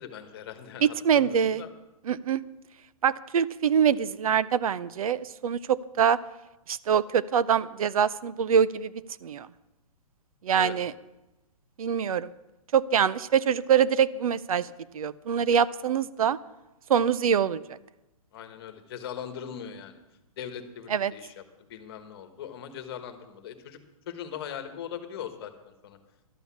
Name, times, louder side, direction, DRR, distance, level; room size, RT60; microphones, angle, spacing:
voice 1, 0.0-1.7 10.5-10.7 18.3-20.0 20.4-21.4 21.7-23.8 24.1-25.5 25.8-26.0, left 9 dB, 40° left, 8 dB, 1.4 m, -40 dB
voice 2, 0.8-1.7 2.1-2.4 3.0-6.2 6.7-8.9 9.2-9.5 10.4-10.9 11.8-12.3 12.7-16.4 16.9-17.8 20.9-21.1, right 8 dB, 70° right, 18 dB, 0.6 m, -24 dB
12.0 x 8.1 x 7.1 m, 0.98 s
hypercardioid pair, 160°, 19 cm